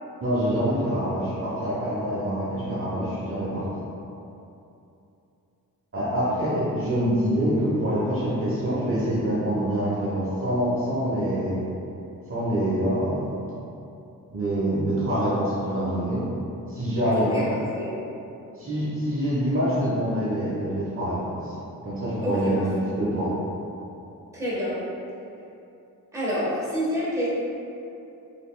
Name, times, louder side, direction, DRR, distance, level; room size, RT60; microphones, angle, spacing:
voice 1, 0.2-3.6 5.9-11.7 12.3-13.3 13.5-13.6 14.3-16.3 16.7-17.3 18.6-21.5 21.8-22.7 23.0-23.3, equal, 35° right, -9 dB, 0.9 m, -25 dB
voice 2, 17.1-17.9 22.2-22.9 24.3-24.8 26.1-27.3, equal, 10° right, -9 dB, 1.2 m, -28 dB
4.0 x 3.4 x 2.2 m, 2.8 s
cardioid pair, 95°, 35 cm